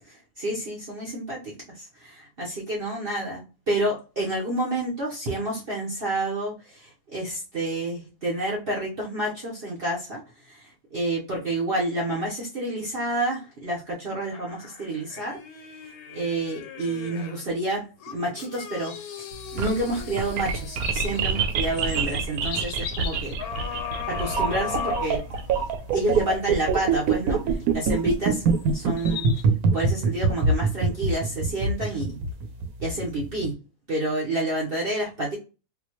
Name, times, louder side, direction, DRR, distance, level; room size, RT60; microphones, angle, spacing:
voice 1, 0.4-10.2 10.5-15.4 15.8-18.9 19.2-19.3 19.5-23.4 24.1-25.2 25.9-27.4 27.7-28.4 28.7-29.2 29.7-32.2 32.8-33.5 33.9-35.4, right 1 dB, 45° right, -5 dB, 1.1 m, -29 dB
sound 1, 14.3-17.5 18.0-21.7 23.4-25.7 26.2-26.3, left 7 dB, 90° left, 1.2 m, -38 dB
sound 2, 19.3-33.4, right 4 dB, 80° right, 1.1 m, -24 dB
sound 3, 20.7-29.4, left 7 dB, 65° left, 0.9 m, -42 dB
4.1 x 2.3 x 2.9 m, 0.32 s
omnidirectional pair, 1.5 m